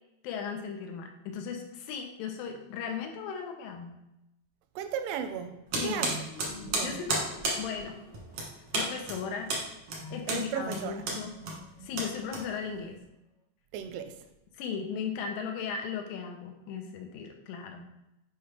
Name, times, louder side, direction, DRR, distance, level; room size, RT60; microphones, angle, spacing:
voice 1, 0.2-3.9 5.8-6.1 6.8-7.2 7.6-8.0 8.7-9.5 10.1-11.3 11.8-13.0 14.6-17.9, left 6 dB, 80° left, 3 dB, 3.3 m, -36 dB
voice 2, 4.8-5.6 5.8-6.1 6.7-7.0 10.3-11.0 13.7-14.2, right 8 dB, 85° right, 8 dB, 3.0 m, -35 dB
sound 1, 5.7-12.9, right 2 dB, 70° right, 1.5 m, -33 dB
sound 2, 6.0-8.6 10.0-12.4, left 1 dB, 60° left, 2.1 m, -46 dB
8.5 x 5.2 x 3.4 m, 0.89 s
omnidirectional pair, 5.6 m